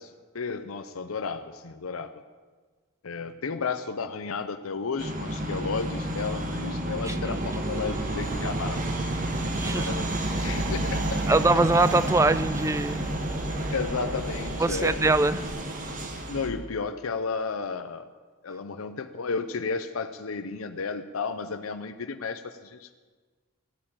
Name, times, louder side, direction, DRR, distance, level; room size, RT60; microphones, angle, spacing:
voice 1, 0.0-2.2 3.0-9.1 9.4-10.1 10.4-11.2 13.7-15.0 16.3-18.1 18.4-23.0, left 4 dB, 85° left, 9 dB, 0.6 m, -33 dB
sound 1, 5.0-16.5, right 1 dB, 40° right, 1.7 m, -30 dB
voice 2, 7.0-7.5 9.6-9.9 11.3-13.1 14.6-15.5, right 2 dB, 15° right, 15 dB, 0.4 m, -23 dB
sound 2, 7.9-15.5, equal, 10° left, 1.8 m, -44 dB
15.0 x 8.7 x 8.8 m, 1.4 s
head